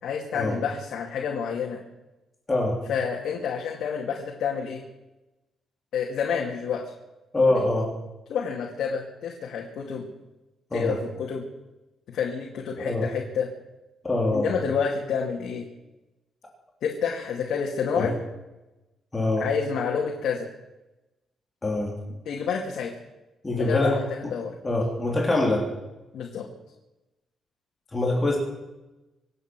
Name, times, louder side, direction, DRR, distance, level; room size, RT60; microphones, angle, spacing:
voice 1, 0.0-1.8 2.9-4.8 5.9-6.8 8.3-10.1 10.7-11.4 12.1-13.5 14.3-15.7 16.8-18.1 19.4-20.5 22.3-22.9 23.5-24.5 26.1-26.5, left 6 dB, 75° left, -1 dB, 2.4 m, -29 dB
voice 2, 7.3-7.9 10.7-11.0 12.8-13.1 14.0-14.5 17.9-18.1 19.1-19.5 21.6-22.0 23.4-24.0 24.6-25.6 27.9-28.4, left 2 dB, 15° left, -1 dB, 3.3 m, -24 dB
25.5 x 8.8 x 6.2 m, 1.0 s
cardioid pair, 155°, 0 cm